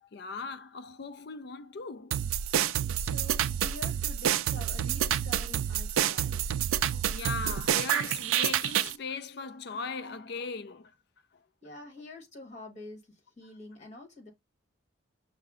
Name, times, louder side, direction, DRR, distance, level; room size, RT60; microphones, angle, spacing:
voice 1, 0.0-2.3 6.3-6.5 6.9-10.9, left 4 dB, 55° left, 0.4 m, -39 dB
sound 1, 2.1-9.0, right 10 dB, 90° right, 0.3 m, -28 dB
voice 2, 3.0-6.5 11.6-14.3, left 2 dB, 35° left, 1.5 m, -47 dB
5.6 x 2.2 x 3.6 m
head